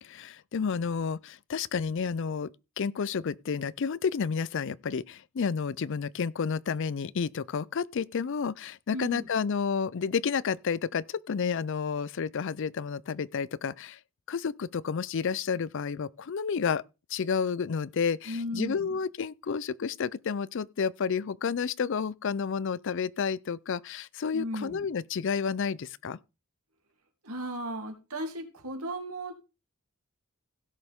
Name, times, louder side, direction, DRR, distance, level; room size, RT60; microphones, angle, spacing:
voice 1, 0.0-2.5 2.8-14.0 14.3-16.8 17.1-26.2, left 6 dB, 60° left, 0.4 m, -30 dB
voice 2, 8.9-9.3 18.3-19.0 24.3-24.9 27.2-29.3, equal, 90° right, 2.9 m, -36 dB
16.5 x 6.7 x 3.6 m
head